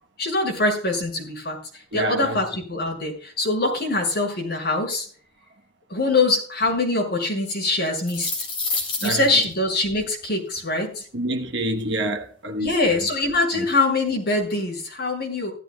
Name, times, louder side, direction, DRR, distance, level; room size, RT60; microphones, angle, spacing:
voice 1, 0.2-5.1 5.9-8.3 9.0-11.0 12.6-15.5, left 2 dB, 50° left, 5.9 m, -23 dB
voice 2, 1.9-2.4 9.0-9.4 11.1-13.1 13.5-13.7, right 1 dB, 60° right, 1.1 m, -28 dB
sound 1, 7.9-9.4, left 3 dB, 30° left, 3.8 m, -28 dB
17.0 x 13.5 x 2.3 m
head